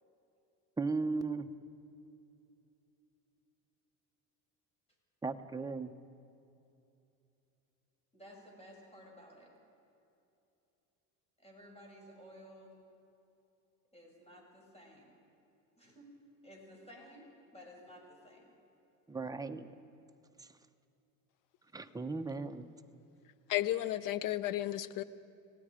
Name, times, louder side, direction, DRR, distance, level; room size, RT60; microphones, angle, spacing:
voice 1, 0.8-1.5 5.2-5.9 19.1-19.7 21.7-22.7, right 4 dB, 10° right, 7 dB, 0.9 m, -36 dB
voice 2, 8.1-9.5 11.4-12.7 13.9-15.1 15.8-16.1 16.4-18.5, equal, 15° left, -1 dB, 6.9 m, -55 dB
voice 3, 23.5-25.0, left 14 dB, 55° left, 16 dB, 0.8 m, -33 dB
29.5 x 17.5 x 5.0 m, 2.8 s
cardioid pair, 110°, 39 cm